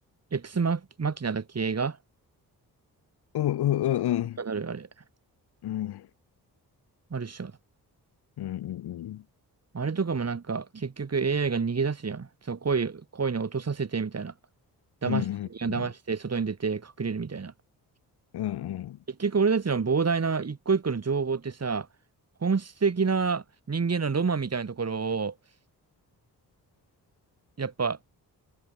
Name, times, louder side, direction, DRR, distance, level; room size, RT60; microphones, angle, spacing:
voice 1, 0.3-2.0 4.4-4.9 7.1-7.5 9.7-14.3 15.0-15.2 15.6-17.5 19.2-21.9 22.4-25.3 27.6-28.0, right 5 dB, 40° right, 3.0 m, -28 dB
voice 2, 3.3-4.4 5.6-6.1 8.4-9.2 15.0-15.9 18.3-19.0, left 13 dB, 90° left, 1.7 m, -29 dB
cardioid pair, 65°, 38 cm